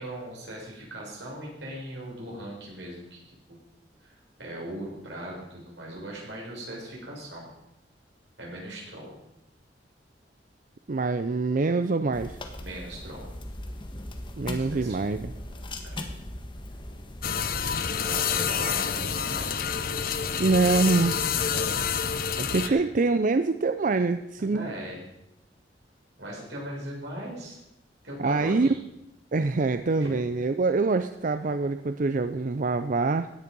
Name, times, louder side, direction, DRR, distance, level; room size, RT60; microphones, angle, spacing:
voice 1, 0.0-3.2 4.0-7.5 8.4-9.1 12.6-13.3 14.6-15.0 15.9-16.0 18.0-19.7 21.4-21.8 22.6-22.8 24.4-25.0 26.2-27.6 28.0-28.8 30.0-30.2, right 1 dB, 85° right, -3 dB, 6.5 m, -39 dB
voice 2, 10.9-12.4 14.4-15.3 20.4-21.2 22.4-24.7 28.2-28.7 29.3-33.3, right 3 dB, 50° right, 10 dB, 0.5 m, -25 dB
sound 1, 12.1-18.0, left 1 dB, 30° left, 1.5 m, -39 dB
sound 2, 17.2-22.7, left 7 dB, 55° left, 0.9 m, -28 dB
16.5 x 10.5 x 5.4 m, 0.86 s
head